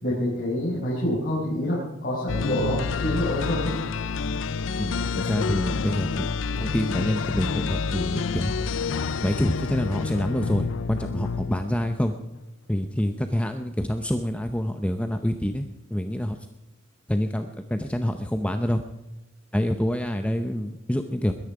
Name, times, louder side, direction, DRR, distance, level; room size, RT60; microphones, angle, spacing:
voice 1, 0.0-3.7, left 1 dB, 45° left, -7 dB, 5.1 m, -27 dB
sound 1, 2.3-12.1, left 5 dB, 70° left, 0.5 m, -28 dB
voice 2, 4.8-6.3 6.6-8.5 9.2-12.1 12.7-16.4 17.1-18.8 19.5-21.3, equal, 5° left, 6 dB, 0.7 m, -27 dB
21.5 x 10.5 x 4.9 m, 0.98 s
head